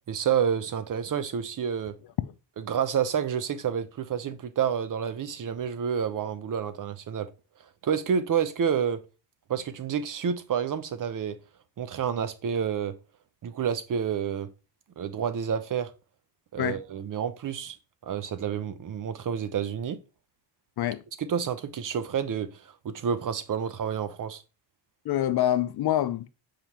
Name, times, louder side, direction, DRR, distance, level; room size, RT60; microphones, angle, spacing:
voice 1, 0.1-2.0 2.6-7.3 7.8-9.0 9.5-11.4 11.8-12.9 13.4-14.5 15.0-15.9 16.5-17.8 18.0-20.0 21.2-24.4, right 7 dB, 45° right, 0.9 m, -29 dB
voice 2, 25.0-26.3, left 12 dB, 55° left, 0.6 m, -26 dB
7.3 x 5.0 x 3.0 m
cardioid pair, 110°, 46 cm